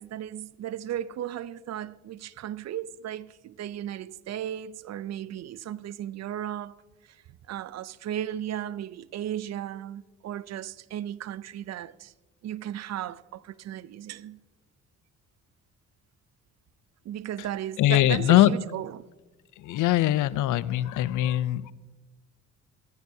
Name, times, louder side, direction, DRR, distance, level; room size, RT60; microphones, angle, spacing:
voice 1, 0.0-6.8 7.1-7.2 7.5-12.1 12.4-14.4 17.0-19.0, right 11 dB, 60° right, 0.5 m, -35 dB
voice 2, 17.8-18.6 19.6-21.7, left 14 dB, 85° left, 0.6 m, -22 dB
20.5 x 14.5 x 2.7 m
cardioid pair, 90°, 30 cm